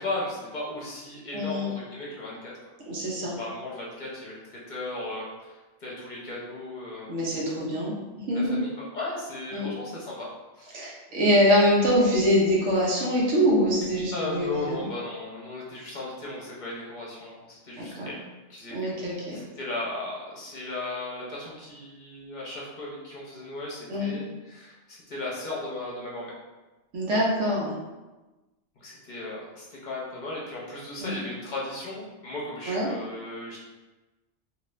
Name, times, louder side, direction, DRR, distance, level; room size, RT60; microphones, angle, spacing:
voice 1, 0.0-2.5 3.3-7.1 8.3-10.3 10.6-10.7 14.1-18.2 18.5-18.9 19.3-26.3 28.8-33.6, left 2 dB, 45° left, -5 dB, 0.9 m, -36 dB
voice 2, 1.3-1.7 2.9-3.4 7.1-8.0 8.3-8.6 9.5-9.7 10.7-14.9 17.8-18.1 18.7-19.4 23.9-24.2 26.9-27.8 31.0-31.2 32.7-32.9, equal, 85° right, -4 dB, 1.2 m, -24 dB
2.8 x 2.5 x 3.1 m, 1.1 s
omnidirectional pair, 1.2 m